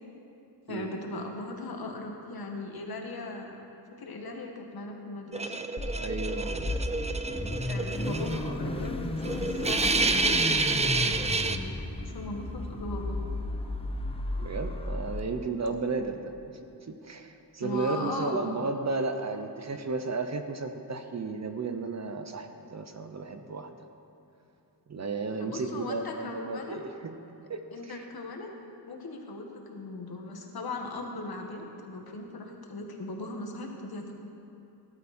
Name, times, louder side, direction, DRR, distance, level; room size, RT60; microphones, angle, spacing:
voice 1, 0.7-3.6 3.9-5.5 7.7-13.2 17.6-18.4 25.4-26.8 27.7-28.6 28.9-34.1, left 2 dB, 60° left, 2 dB, 1.8 m, -38 dB
sound 1, 5.3-8.5 8.8-8.9 9.2-11.6, right 3 dB, 15° right, 0.4 m, -29 dB
Car / Idling / Accelerating revving vroom, 5.8-15.2, left 1 dB, 15° left, 0.7 m, -34 dB
voice 2, 6.0-6.8 14.4-16.3 16.9-23.7 24.9-27.2 27.5-28.0, right 3 dB, 40° right, 7 dB, 0.8 m, -33 dB
17.5 x 12.0 x 4.4 m, 2.9 s
wide cardioid pair, 155°, 41 cm